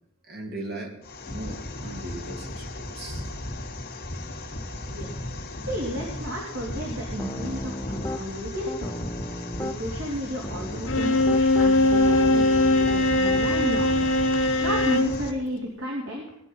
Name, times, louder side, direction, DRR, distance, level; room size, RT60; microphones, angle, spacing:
voice 1, 0.3-1.0 1.2-3.3, right 1 dB, 55° right, 1 dB, 2.9 m, -38 dB
sound 1, 1.0-15.3, left 1 dB, 50° left, 2.2 m, -35 dB
voice 2, 5.7-9.1 9.6-16.3, equal, 70° right, -2 dB, 3.3 m, -33 dB
Piano, 7.2-8.2 8.7-9.8 10.4-13.7, left 1 dB, 15° left, 0.5 m, -33 dB
Bowed string instrument, 10.9-15.2, left 2 dB, 85° left, 1.3 m, -21 dB
19.5 x 11.0 x 5.6 m, 0.72 s
head